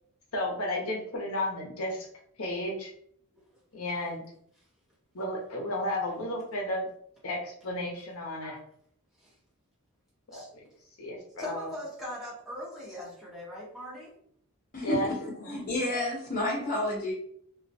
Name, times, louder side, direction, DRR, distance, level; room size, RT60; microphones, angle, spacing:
voice 1, 0.3-2.1 2.4-2.9 3.7-4.2 5.1-6.9 7.2-8.5 10.3-10.6 11.0-11.7 14.8-15.1 15.4-15.7, left 1 dB, 75° left, -1 dB, 0.7 m, -33 dB
voice 2, 11.4-14.1, left 1 dB, ahead, -8 dB, 0.8 m, -40 dB
voice 3, 14.7-15.2 15.5-17.1, left 2 dB, 40° left, -6 dB, 0.8 m, -30 dB
2.2 x 2.1 x 2.6 m, 0.64 s
head